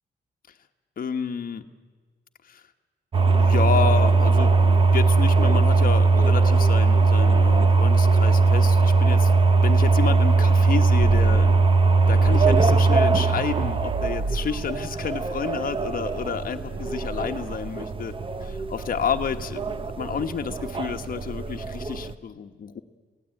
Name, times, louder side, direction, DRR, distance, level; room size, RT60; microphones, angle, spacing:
voice 1, 1.0-1.7 2.5-2.6 3.3-9.3 9.6-18.1 18.4-22.8, left 7 dB, 50° left, 6 dB, 1.2 m, -30 dB
sound 1, 3.1-22.1, right 3 dB, 30° right, 0.9 m, -20 dB
27.0 x 17.0 x 9.1 m, 1.5 s
wide cardioid pair, 160°, 19 cm